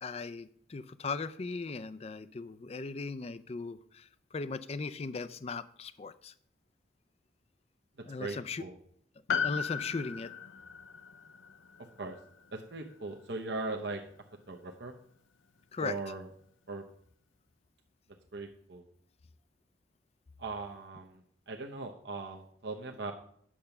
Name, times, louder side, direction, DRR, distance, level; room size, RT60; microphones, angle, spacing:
voice 1, 0.0-6.3 8.1-8.6 9.4-10.3 15.7-15.9, left 4 dB, 30° left, 15 dB, 0.4 m, -38 dB
voice 2, 8.2-8.8 12.0-12.2 12.5-14.0 14.5-14.9 15.8-16.3 16.7-16.8 18.3-18.8 20.4-23.1, right 3 dB, 60° right, 2 dB, 0.8 m, -39 dB
Piano, 9.3-13.9 14.1-14.2, left 6 dB, 90° left, 0.7 m, -37 dB
8.7 x 6.6 x 5.8 m, 0.65 s
head